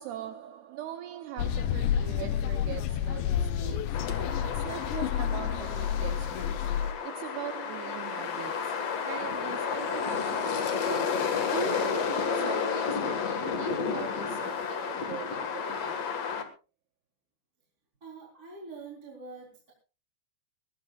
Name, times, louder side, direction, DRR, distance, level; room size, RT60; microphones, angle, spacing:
voice 1, 0.0-16.2, right 11 dB, 80° right, 2.4 m, -41 dB
sound 1, 1.4-6.9, left 9 dB, 75° left, 3.0 m, -30 dB
sound 2, 3.9-16.4, left 6 dB, 55° left, 1.8 m, -31 dB
voice 2, 18.0-19.7, right 4 dB, 20° right, 3.7 m, -45 dB
22.0 x 18.0 x 2.4 m
omnidirectional pair, 5.4 m